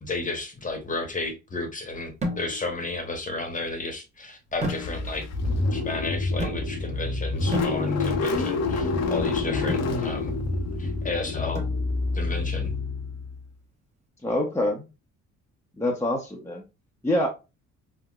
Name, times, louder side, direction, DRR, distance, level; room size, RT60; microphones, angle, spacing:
voice 1, 0.0-5.2 5.7-10.3 10.8-11.6 12.1-12.7, left 2 dB, 25° left, 1.0 m, -33 dB
sound 1, 2.2-2.8 4.6-5.3 6.4-7.0 7.5-8.3 9.7-10.0 11.5-12.2, equal, 25° right, 0.9 m, -33 dB
Car / Engine starting, 4.7-13.4, left 3 dB, 55° left, 0.7 m, -27 dB
voice 2, 14.2-14.8 15.8-16.6 17.0-17.3, left 1 dB, 10° left, 0.6 m, -25 dB
3.7 x 2.1 x 2.3 m
cardioid pair, 90°, 30 cm